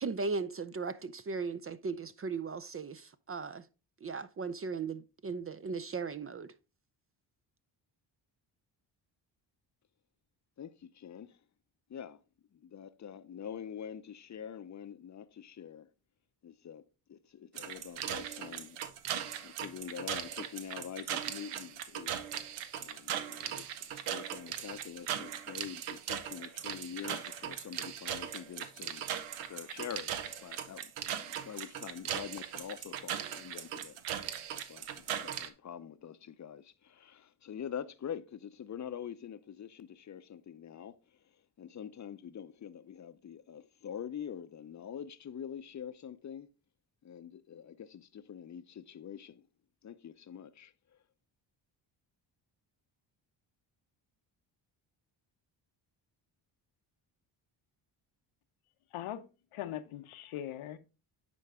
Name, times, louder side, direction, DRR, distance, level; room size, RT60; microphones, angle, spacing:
voice 1, 0.0-3.7 4.0-6.5, right 4 dB, 30° right, 0.5 m, -37 dB
voice 2, 10.6-11.4 11.9-12.2 12.5-15.9 16.4-16.8 17.1-18.8 19.4-22.2 22.8-29.0 29.4-34.0 34.5-41.0 41.6-46.5 47.0-49.4 49.8-50.7, left 8 dB, 35° left, 0.6 m, -45 dB
sound 1, 17.6-35.5, right 9 dB, 85° right, 0.8 m, -39 dB
voice 3, 58.9-59.2 59.5-60.8, left 11 dB, 75° left, 0.8 m, -40 dB
9.6 x 3.8 x 3.5 m
supercardioid pair, 55°, 50 cm